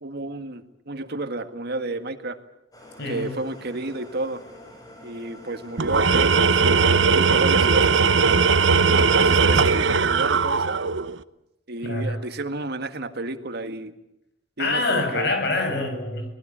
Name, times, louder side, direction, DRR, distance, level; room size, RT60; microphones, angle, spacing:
voice 1, 0.0-2.4 3.1-4.4 5.0-8.3 8.9-10.8 11.7-13.9 14.6-15.3, right 2 dB, 60° right, 9 dB, 1.8 m, -31 dB
sound 1, 2.7-9.8, left 1 dB, 20° left, 7.6 m, -45 dB
voice 2, 3.0-3.3 11.8-12.2 14.6-16.3, left 2 dB, 65° left, 6 dB, 7.5 m, -25 dB
Tools, 5.8-11.1, right 5 dB, 80° right, 0.9 m, -19 dB
25.5 x 20.0 x 8.8 m, 0.84 s
head